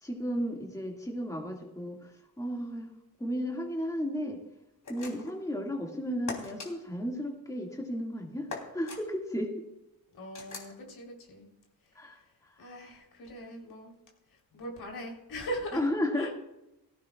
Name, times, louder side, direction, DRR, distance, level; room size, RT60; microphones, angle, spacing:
voice 1, 0.0-4.4 4.9-9.6 12.0-12.6 15.7-16.4, equal, 10° left, 1 dB, 1.9 m, -34 dB
sound 1, 4.8-5.4 6.3-6.7 8.5-9.0 10.3-10.7, left 4 dB, 55° left, 3.2 m, -40 dB
voice 2, 10.1-11.5 12.6-13.9 14.5-15.8 16.2-16.3, equal, 80° left, 0 dB, 3.7 m, -40 dB
17.0 x 15.0 x 2.4 m, 0.92 s
cardioid pair, 90°, 37 cm